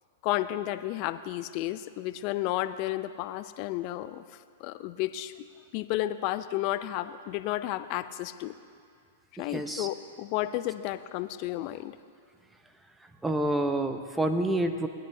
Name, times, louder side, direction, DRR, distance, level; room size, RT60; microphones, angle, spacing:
voice 1, 0.2-4.2 4.6-5.5 5.7-8.5 9.4-11.9, left 15 dB, 45° left, 13 dB, 0.5 m, -32 dB
voice 2, 9.4-9.9 13.0-14.9, right 1 dB, 10° right, 7 dB, 0.8 m, -28 dB
18.5 x 10.5 x 2.7 m, 2.2 s
hypercardioid pair, 115°, 0 cm